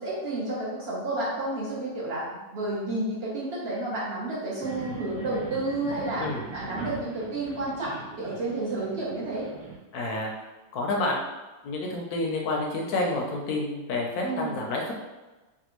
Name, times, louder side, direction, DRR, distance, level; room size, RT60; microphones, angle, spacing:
voice 1, 0.0-9.5 14.2-14.5, right 2 dB, 55° right, -6 dB, 0.7 m, -31 dB
sound 1, 4.6-9.8, right 3 dB, 75° right, 1.3 m, -40 dB
voice 2, 9.9-10.4 10.7-11.2 11.6-14.9, left 2 dB, 70° left, 0 dB, 1.0 m, -29 dB
3.3 x 2.3 x 2.9 m, 1.2 s
omnidirectional pair, 1.9 m